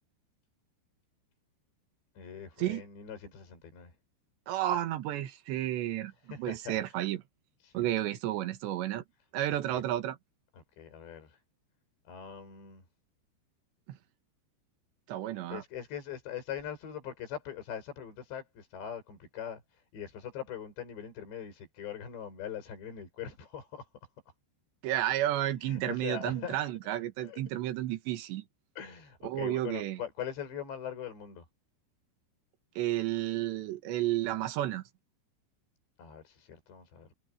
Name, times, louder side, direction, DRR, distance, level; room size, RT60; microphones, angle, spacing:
voice 1, 2.2-3.9 6.3-6.8 7.6-7.9 9.7-9.8 10.6-11.4 12.1-12.8 15.5-19.6 19.9-23.9 25.6-26.6 27.2-27.4 28.8-31.4 36.0-37.1, left 9 dB, 70° left, 7.8 m, -42 dB
voice 2, 4.5-7.2 7.7-9.0 9.3-10.2 13.9-14.0 15.1-15.6 24.8-28.4 29.2-30.0 32.8-34.8, right 13 dB, 75° right, 3.8 m, -32 dB
omnidirectional pair, 5.2 m